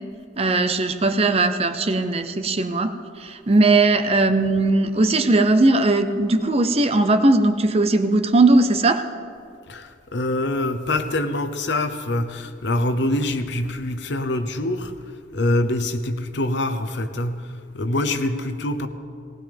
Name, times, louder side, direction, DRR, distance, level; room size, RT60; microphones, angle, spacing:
voice 1, 0.4-9.0, right 2 dB, 30° right, 9 dB, 0.7 m, -19 dB
voice 2, 9.7-14.9 15.3-18.9, left 1 dB, 65° left, 8 dB, 0.9 m, -25 dB
19.0 x 18.5 x 3.5 m, 2.3 s
head